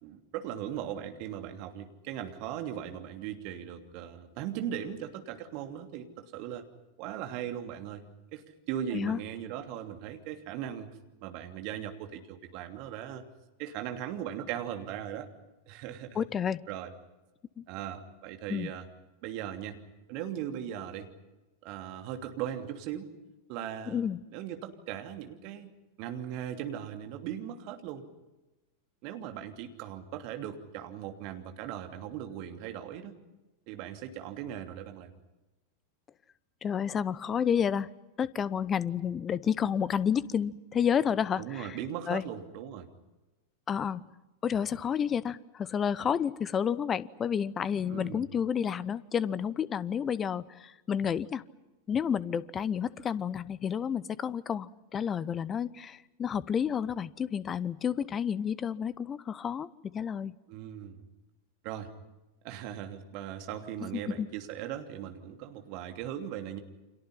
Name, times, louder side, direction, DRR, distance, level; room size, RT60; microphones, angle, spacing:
voice 1, 0.0-6.7 7.0-8.0 8.3-13.2 13.6-15.3 15.7-16.2 16.7-16.9 17.7-18.9 19.2-19.8 20.1-21.1 21.6-23.1 23.5-24.0 24.3-25.7 26.0-28.1 29.0-33.1 33.7-35.1 41.4-42.9 47.9-48.3 60.5-61.1 61.6-61.9 62.4-66.6, right 10 dB, 45° right, 6 dB, 2.9 m, -38 dB
voice 2, 16.2-16.6 17.6-17.7 18.5-18.7 23.9-24.2 36.6-37.9 38.2-41.8 42.1-42.2 43.7-44.1 44.4-51.4 51.9-60.4 64.1-64.3, left 8 dB, 25° left, 20 dB, 0.9 m, -30 dB
30.0 x 26.5 x 5.7 m, 1.1 s
figure-of-eight pair, 90°, 0 cm